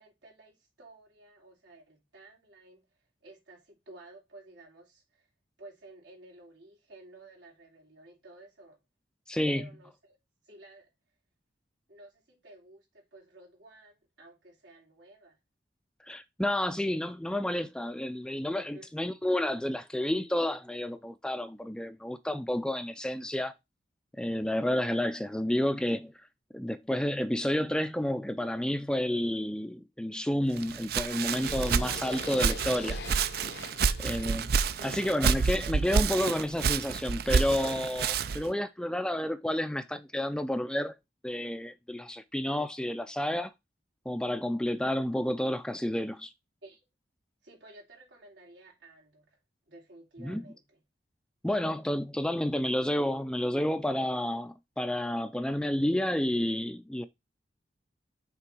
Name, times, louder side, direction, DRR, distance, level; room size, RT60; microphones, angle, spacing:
voice 1, 0.0-5.3 5.6-8.8 9.5-10.2 10.4-10.9 11.9-15.4 18.7-18.9 33.8-34.3 34.8-35.1 46.6-46.8 47.4-49.4 49.7-50.8, right 2 dB, 90° right, 3.2 m, -53 dB
voice 2, 9.3-9.7 16.1-23.5 24.2-26.1 26.5-33.0 34.0-34.5 34.8-40.9 41.2-43.5 44.1-46.3 50.2-50.4 51.4-57.1, left 1 dB, 5° left, 0.4 m, -30 dB
Walk footsteps, 30.6-38.5, right 5 dB, 60° right, 0.4 m, -29 dB
sound 1, 31.3-35.4, left 4 dB, 70° left, 0.8 m, -44 dB
6.0 x 3.8 x 4.5 m
head